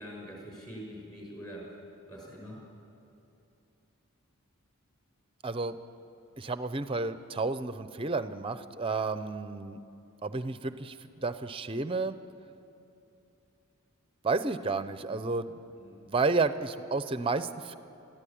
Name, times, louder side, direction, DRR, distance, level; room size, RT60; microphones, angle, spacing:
voice 1, 0.0-1.7 2.1-2.6 15.8-16.0, equal, 20° left, -2 dB, 5.6 m, -44 dB
voice 2, 5.4-5.8 6.4-9.8 10.2-12.2 14.2-15.5 16.1-17.8, right 3 dB, 25° right, 12 dB, 0.6 m, -31 dB
21.0 x 14.5 x 8.6 m, 2.8 s
head